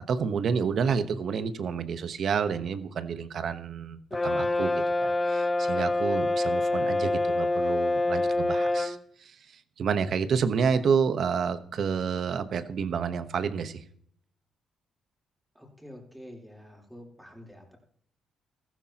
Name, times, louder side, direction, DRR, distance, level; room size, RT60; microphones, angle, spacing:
voice 1, 0.1-13.8, right 6 dB, 60° right, 11 dB, 1.1 m, -29 dB
Brass instrument, 4.1-9.0, left 2 dB, 20° left, 0.7 m, -26 dB
voice 2, 15.6-17.8, equal, 5° right, 0 dB, 3.6 m, -47 dB
15.0 x 13.5 x 2.9 m, 0.63 s
cardioid pair, 90°, 0 cm